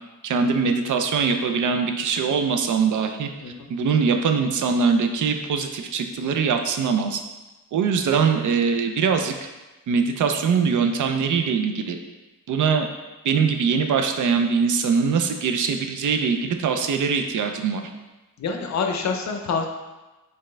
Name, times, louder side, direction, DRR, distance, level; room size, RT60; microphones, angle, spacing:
voice 1, 0.2-3.3 3.7-7.2 7.7-9.5 9.9-12.0 12.5-12.9 13.2-17.8, right 5 dB, 60° right, 6 dB, 0.5 m, -22 dB
voice 2, 18.4-19.7, left 5 dB, 55° left, 3 dB, 0.6 m, -26 dB
4.4 x 3.6 x 3.2 m, 1.1 s
wide cardioid pair, 165°, 34 cm